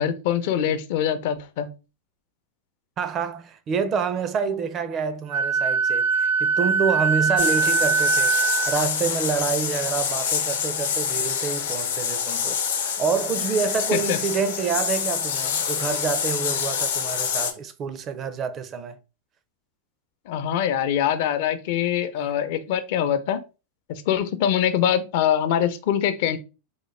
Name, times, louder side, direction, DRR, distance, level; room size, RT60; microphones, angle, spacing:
voice 1, 0.0-1.7 13.9-14.2 20.3-23.4 23.9-26.4, left 9 dB, 65° left, 0.5 m, -23 dB
voice 2, 3.0-19.0, right 6 dB, 30° right, 0.4 m, -27 dB
Wind instrument woodwind instrument, 5.3-8.8, right 5 dB, 75° right, 0.7 m, -22 dB
sound 1, 7.4-17.5, left 7 dB, 85° left, 0.8 m, -26 dB
3.9 x 2.1 x 3.1 m
supercardioid pair, 130°, 0 cm